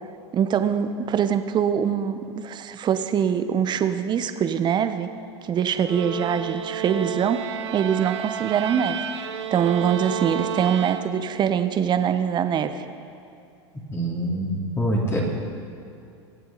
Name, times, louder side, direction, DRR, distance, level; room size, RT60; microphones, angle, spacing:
voice 1, 0.3-5.1 5.4-12.8, right 8 dB, 30° right, 10 dB, 0.8 m, -23 dB
sound 1, 5.8-11.5, right 9 dB, 80° right, 0.8 m, -31 dB
voice 2, 13.9-15.2, equal, 15° left, -3 dB, 2.7 m, -25 dB
23.5 x 7.8 x 4.0 m, 2.5 s
hypercardioid pair, 95°, 15 cm